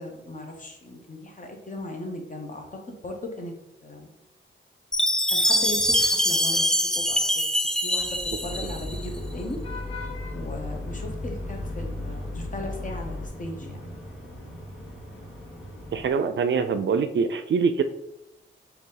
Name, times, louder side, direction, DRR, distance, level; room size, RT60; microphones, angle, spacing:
voice 1, 0.0-3.5 3.8-4.1 5.3-6.6 6.9-7.4 7.8-9.6 10.3-13.9, left 1 dB, 40° left, 3 dB, 1.0 m, -37 dB
Chime, 4.9-9.0, equal, 5° left, 0.4 m, -24 dB
Vehicle horn car horn honking / Traffic noise roadway noise, 8.0-13.3, left 2 dB, 85° left, 0.8 m, -36 dB
sound 1, 8.4-16.1, equal, 65° left, 1.5 m, -40 dB
voice 2, 15.9-17.8, right 5 dB, 60° right, 10 dB, 0.4 m, -24 dB
4.0 x 2.8 x 3.8 m, 0.88 s
cardioid pair, 60°, 21 cm